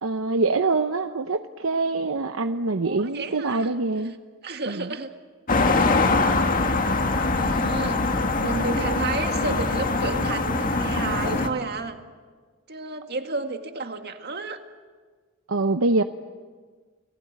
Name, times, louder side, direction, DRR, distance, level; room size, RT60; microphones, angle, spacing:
voice 1, 0.0-4.2 4.7-4.9 15.5-16.0, right 3 dB, 75° right, 8 dB, 0.8 m, -24 dB
voice 2, 2.8-3.7 4.4-5.1 5.7-6.0 7.4-8.0 8.4-12.0 12.7-14.6, right 3 dB, 50° right, 6 dB, 2.0 m, -31 dB
sound 1, 5.5-11.5, left 3 dB, 40° left, 1.9 m, -23 dB
30.0 x 19.5 x 9.4 m, 1.5 s
head